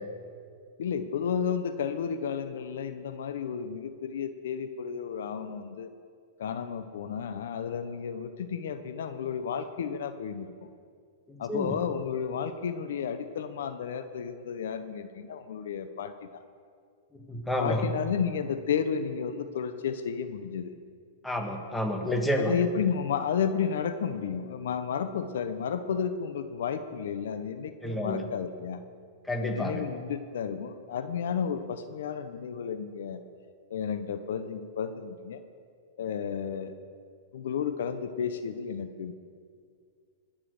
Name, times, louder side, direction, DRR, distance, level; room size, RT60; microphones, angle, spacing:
voice 1, 0.8-5.9 6.4-10.5 11.4-16.4 17.6-20.7 22.4-28.8 29.4-33.2 33.7-35.4 36.0-36.7 37.3-39.1, left 7 dB, 75° left, 10 dB, 0.9 m, -32 dB
voice 2, 11.3-11.8 17.1-17.9 21.2-22.6 27.8-28.2 29.2-29.8, equal, 5° left, 3 dB, 1.7 m, -30 dB
21.0 x 7.5 x 6.6 m, 2.2 s
hypercardioid pair, 130°, 0 cm